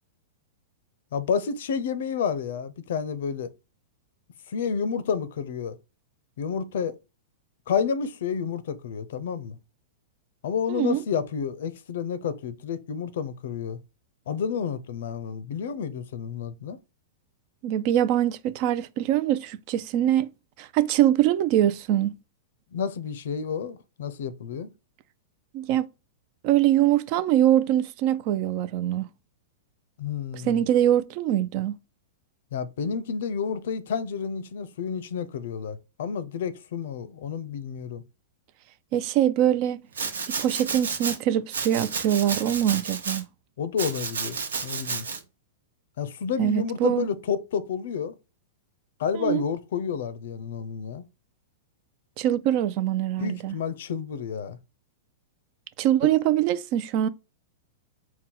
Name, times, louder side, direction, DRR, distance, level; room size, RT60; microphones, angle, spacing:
voice 1, 1.1-3.5 4.5-5.7 6.4-7.0 7.7-9.6 10.4-13.8 14.3-16.8 22.7-24.7 30.0-30.6 32.5-38.0 43.6-45.1 46.0-48.1 49.0-51.0 53.2-54.6 56.0-56.1, left 6 dB, 70° left, 0.5 m, -30 dB
voice 2, 10.7-11.0 17.6-22.1 25.5-25.9 26.4-29.1 30.3-31.8 38.9-39.8 40.3-43.3 46.4-47.1 49.1-49.4 52.2-53.6 55.8-57.1, right 12 dB, 50° right, 0.4 m, -23 dB
Domestic sounds home sounds, 39.9-41.2 41.5-43.2 43.8-45.2, right 5 dB, 90° right, 0.8 m, -31 dB
4.2 x 2.2 x 3.7 m
hypercardioid pair, 125°, 0 cm